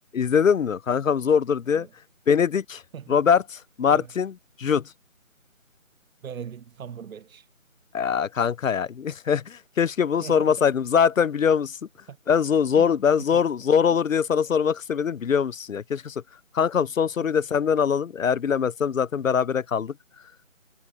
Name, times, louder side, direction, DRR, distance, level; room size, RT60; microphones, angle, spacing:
voice 1, 0.1-1.9 2.3-2.8 3.1-4.9 7.9-11.8 12.3-16.2 16.5-19.9, left 7 dB, 75° left, 0.6 m, -22 dB
voice 2, 6.2-7.5 10.2-10.7 12.1-12.2 13.9-14.0, right 7 dB, 85° right, 0.6 m, -39 dB
figure-of-eight pair, 165°, 40 cm